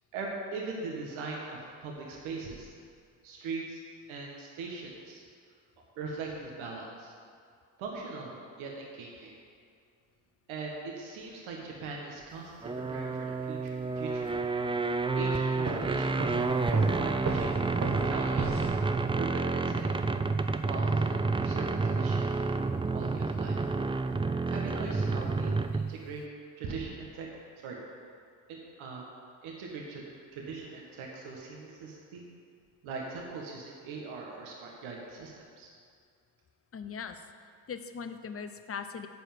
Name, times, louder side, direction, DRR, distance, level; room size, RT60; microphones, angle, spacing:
voice 1, 0.1-2.7 3.2-3.8 4.1-5.2 6.0-7.1 7.8-9.3 10.5-14.3 15.1-17.5 18.0-18.6 19.2-20.0 20.6-22.5 22.9-23.6 24.5-26.2 26.6-27.3 27.6-27.8 28.5-29.1 29.4-30.0 30.3-32.2 32.8-35.3 35.6-35.7, right 4 dB, 85° right, -1 dB, 1.6 m, -40 dB
sound 1, 12.6-26.0, right 3 dB, 10° right, 0.4 m, -29 dB
sound 2, 15.7-19.3, right 3 dB, 35° right, 1.3 m, -36 dB
voice 2, 36.7-37.2 37.7-39.1, left 6 dB, 30° left, 8 dB, 0.8 m, -39 dB
11.5 x 4.8 x 7.7 m, 2.2 s
supercardioid pair, 65°, 47 cm